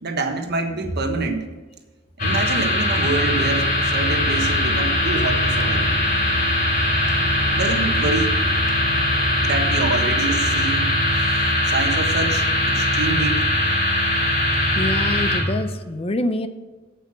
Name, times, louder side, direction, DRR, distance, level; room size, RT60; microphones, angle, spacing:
voice 1, 0.0-1.5 2.2-5.9 7.5-8.4 9.4-13.5, right 3 dB, 55° right, 5 dB, 1.3 m, -26 dB
sound 1, 2.2-15.4, left 1 dB, 45° left, 3.2 m, -21 dB
Musical instrument, 3.9-10.7, left 2 dB, 65° left, 1.6 m, -33 dB
voice 2, 14.8-16.5, left 1 dB, 30° left, 10 dB, 0.6 m, -25 dB
8.4 x 8.3 x 6.0 m, 1.3 s
head